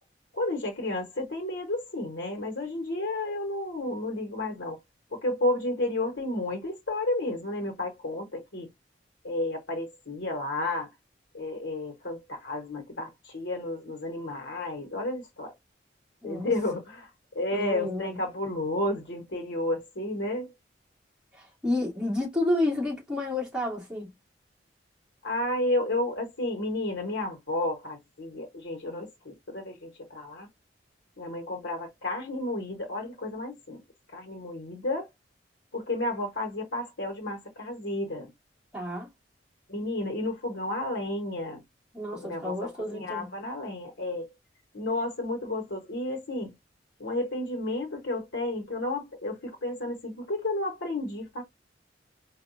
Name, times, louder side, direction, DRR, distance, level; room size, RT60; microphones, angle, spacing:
voice 1, 0.3-4.8 5.1-8.7 9.2-10.9 11.3-15.5 16.2-17.1 17.3-20.5 25.2-30.5 31.2-33.8 34.1-35.1 35.7-38.3 39.7-41.6 42.1-44.3 44.7-46.5 47.0-51.4, left 2 dB, 85° left, 1.2 m, -32 dB
voice 2, 17.5-18.1 21.6-24.1 38.7-39.1 41.9-43.3, left 1 dB, 5° right, 2.2 m, -30 dB
4.6 x 2.5 x 2.6 m
head